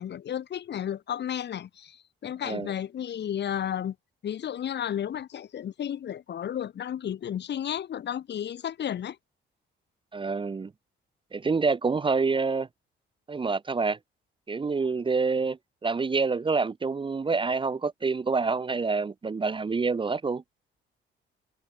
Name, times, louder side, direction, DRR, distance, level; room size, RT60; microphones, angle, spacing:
voice 1, 0.0-4.0 4.2-9.2, left 9 dB, 60° left, 2.1 m, -33 dB
voice 2, 10.1-10.7 11.3-12.7 13.3-14.0 14.5-20.4, right 4 dB, 25° right, 0.8 m, -27 dB
cardioid pair, 90°, 20 cm